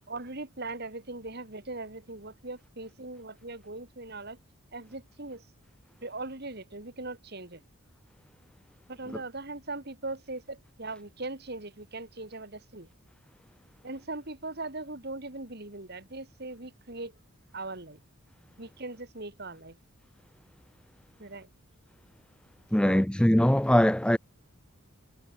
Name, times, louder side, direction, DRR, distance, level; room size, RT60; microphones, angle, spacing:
voice 1, 0.1-4.4 4.7-5.4 6.0-7.6 8.9-12.9 13.8-17.1 17.5-18.0 18.6-19.8 21.2-21.5 22.8-23.0, right 2 dB, 50° right, 2.9 m, -40 dB
voice 2, 22.7-24.2, equal, 5° left, 0.5 m, -22 dB
head